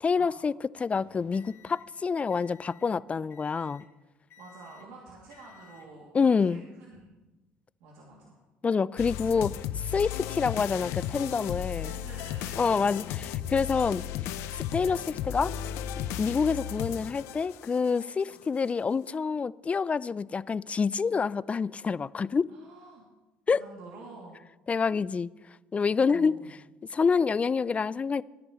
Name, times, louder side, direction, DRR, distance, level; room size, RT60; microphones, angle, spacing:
voice 1, 0.0-3.8 6.1-6.6 8.6-11.9 12.6-14.0 14.5-15.5 16.2-22.5 23.5-23.6 24.7-25.3 25.7-26.3 26.9-28.2, left 5 dB, 30° left, 20 dB, 0.4 m, -27 dB
sound 1, 0.9-2.9 3.3-3.9 4.3-4.9 5.3-5.9 6.7-7.0, left 10 dB, 55° left, 2.0 m, -57 dB
voice 2, 4.4-7.2 7.8-8.4 11.8-13.2 18.3-18.4 22.5-23.0 23.5-24.4 26.0-26.5, right 3 dB, 75° right, -3 dB, 2.7 m, -49 dB
sound 2, 9.0-18.0, left 10 dB, 70° left, 0.6 m, -35 dB
18.5 x 10.5 x 3.1 m, 1.1 s
hypercardioid pair, 70°, 5 cm